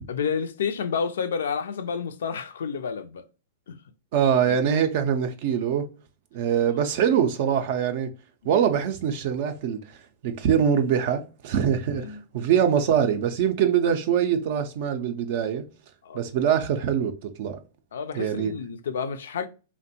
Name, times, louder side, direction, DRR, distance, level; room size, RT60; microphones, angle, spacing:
voice 1, 0.1-3.2 3.7-3.8 4.5-4.6 8.4-8.5 11.9-12.2 16.0-16.2 17.9-19.5, left 6 dB, 75° left, 0.3 m, -30 dB
voice 2, 4.1-5.9 6.3-8.1 8.4-10.0 10.2-15.6 16.1-17.6 18.1-18.5, right 8 dB, 55° right, 0.4 m, -23 dB
2.6 x 2.1 x 2.6 m
hypercardioid pair, 110°, 0 cm